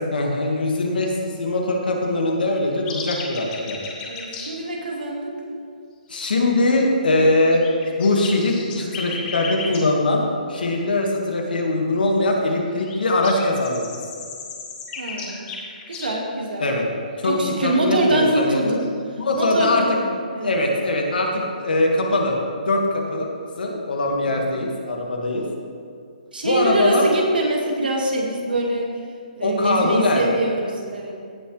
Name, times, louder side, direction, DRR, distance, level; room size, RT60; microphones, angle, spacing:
voice 1, 0.1-3.8 6.1-7.6 8.0-10.2 10.5-13.9 16.6-16.8 17.2-18.7 19.2-20.0 20.4-22.4 22.7-23.3 23.6-25.5 26.4-27.0 29.4-30.3, left 2 dB, 80° left, 0 dB, 2.0 m, -21 dB
sound 1, 2.8-4.5 7.3-9.8 12.8-16.1 17.9-18.0 18.2-18.9 19.3-19.6, left 5 dB, 20° left, 1.2 m, -34 dB
voice 2, 4.1-5.3 15.0-15.4 15.9-16.7 17.3-18.8 19.4-19.9 20.3-20.6 26.3-28.9 29.4-31.1, right 2 dB, 85° right, 0 dB, 2.2 m, -24 dB
16.5 x 6.2 x 3.4 m, 2.3 s
hypercardioid pair, 155°, 5 cm